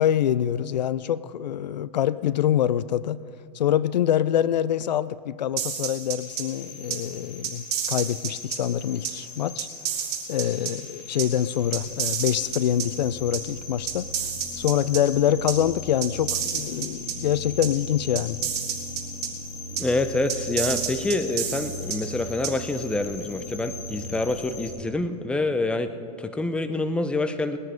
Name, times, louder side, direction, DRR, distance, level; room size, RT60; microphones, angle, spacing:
voice 1, 0.0-3.2 3.5-9.7 10.3-14.1 14.5-18.4, left 10 dB, 90° left, 18 dB, 0.5 m, -25 dB
sound 1, 5.6-6.4 6.9-7.0 7.4-8.6 9.0-9.1 9.6-10.7 11.2-11.3 11.7-12.8 13.3-13.4 13.9-15.0 15.5-15.6 16.0-17.1 17.6-17.7 18.1-19.3 19.8-19.9 20.3-22.0 22.4-22.5, right 8 dB, 65° right, 2.4 m, -29 dB
sound 2, 6.2-24.7, left 2 dB, 50° left, 3.2 m, -39 dB
voice 2, 19.7-25.9 26.2-27.6, left 2 dB, 5° left, 10 dB, 0.6 m, -26 dB
19.5 x 9.7 x 5.1 m, 2.3 s
hypercardioid pair, 125°, 21 cm